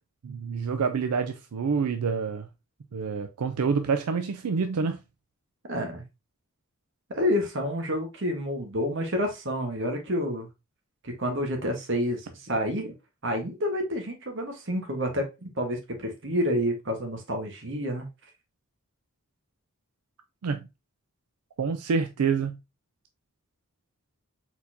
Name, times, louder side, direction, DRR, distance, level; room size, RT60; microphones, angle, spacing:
voice 1, 0.2-2.5 2.9-5.0 20.4-20.7 21.6-22.6, right 5 dB, 85° right, 0.4 m, -27 dB
voice 2, 5.7-6.0 7.1-10.5 11.0-12.9 13.2-18.1, equal, 55° right, 1.3 m, -29 dB
4.3 x 4.1 x 2.7 m
head